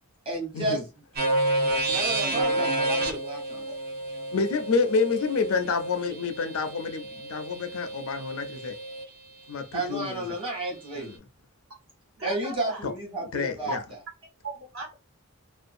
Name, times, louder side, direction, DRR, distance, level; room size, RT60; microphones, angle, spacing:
voice 1, 0.2-0.8 1.9-3.7 9.7-11.1 12.2-13.8, right 2 dB, 25° right, 1.0 m, -32 dB
sound 1, 1.2-9.0, right 1 dB, 45° right, 0.6 m, -30 dB
voice 2, 2.3-2.8 3.7-3.8 4.5-4.7 12.2-12.9 13.7-13.8 14.4-14.9, right 2 dB, 65° right, 1.3 m, -37 dB
voice 3, 4.3-8.8 9.5-10.2 11.0-11.2 12.8-12.9 13.3-13.8, left 4 dB, 65° left, 0.4 m, -28 dB
2.5 x 2.2 x 2.5 m
head